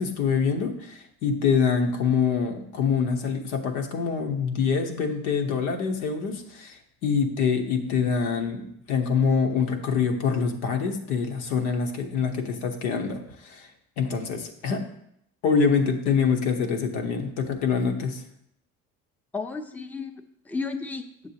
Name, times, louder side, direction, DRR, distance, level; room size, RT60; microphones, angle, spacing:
voice 1, 0.0-13.7 14.0-14.9 15.4-18.2, left 6 dB, 85° left, 4 dB, 1.1 m, -25 dB
voice 2, 19.3-21.3, left 4 dB, 5° left, 4 dB, 0.7 m, -33 dB
7.6 x 6.7 x 2.9 m, 0.73 s
supercardioid pair, 80°, 33 cm